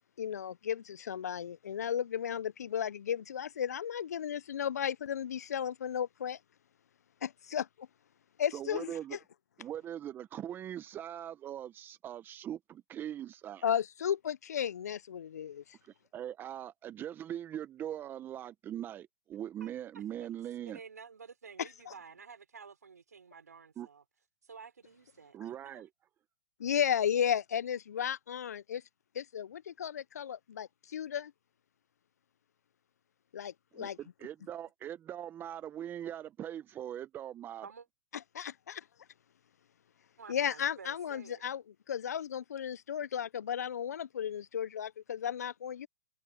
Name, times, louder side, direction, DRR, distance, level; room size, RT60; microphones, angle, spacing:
voice 1, 0.2-6.4 7.2-7.9 8.4-8.9 13.6-15.6 21.6-21.9 26.6-28.8 29.1-31.3 33.3-34.0 38.1-38.8 40.3-41.6 41.9-45.9, left 9 dB, 75° left, 0.7 m, -34 dB
voice 2, 8.5-9.2 9.6-13.6 15.8-20.8 23.8-23.9 25.3-25.9 33.7-37.7, right 11 dB, 25° right, 1.2 m, -41 dB
voice 3, 20.7-24.0 24.4-25.8 37.6-37.8 40.2-41.4, right 5 dB, 90° right, 3.7 m, -51 dB
hypercardioid pair, 120°, 9 cm